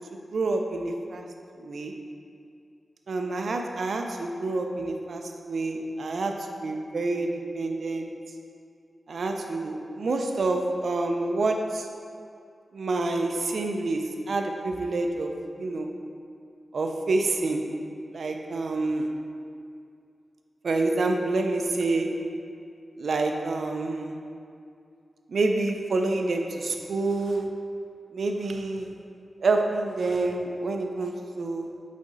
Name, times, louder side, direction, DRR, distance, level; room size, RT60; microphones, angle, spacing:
voice 1, 0.1-1.2 1.6-2.0 3.1-8.1 9.1-11.8 12.7-15.3 15.6-15.9 16.7-17.7 18.1-19.1 20.6-22.2 23.0-24.2 25.3-27.6 28.1-28.9 29.4-31.7, right 2 dB, 70° right, 3 dB, 0.6 m, -28 dB
8.4 x 4.2 x 4.0 m, 2.5 s
wide cardioid pair, 145°, 0 cm